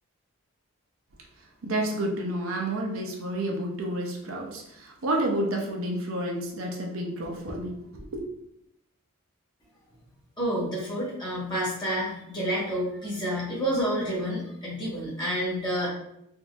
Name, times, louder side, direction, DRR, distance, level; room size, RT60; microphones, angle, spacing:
voice 1, 1.6-8.2, right 1 dB, 75° right, 0 dB, 0.6 m, -30 dB
voice 2, 10.4-15.9, equal, 20° left, -6 dB, 1.3 m, -29 dB
3.6 x 2.7 x 2.5 m, 0.79 s
head